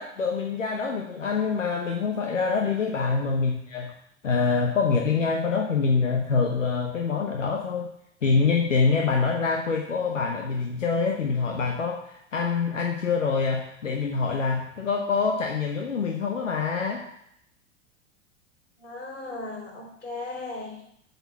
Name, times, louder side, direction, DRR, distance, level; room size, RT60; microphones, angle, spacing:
voice 1, 0.0-3.9 4.2-7.9 8.2-17.0, left 5 dB, 90° left, 1 dB, 0.9 m, -25 dB
voice 2, 18.8-20.8, left 2 dB, 25° left, -3 dB, 3.9 m, -36 dB
7.9 x 4.3 x 7.0 m, 0.73 s
hypercardioid pair, 90°, 37 cm